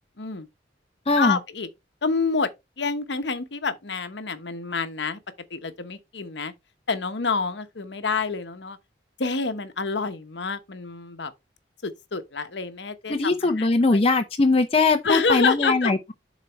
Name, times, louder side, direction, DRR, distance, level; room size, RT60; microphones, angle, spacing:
voice 1, 0.2-0.5 1.2-1.7 2.0-2.5 2.8-5.2 5.5-6.5 6.9-8.8 9.2-11.3 11.8-14.0 15.0-15.9, left 4 dB, 65° left, 1.0 m, -28 dB
voice 2, 1.1-1.4 13.1-16.1, left 3 dB, 30° left, 0.6 m, -21 dB
7.4 x 4.0 x 4.3 m
head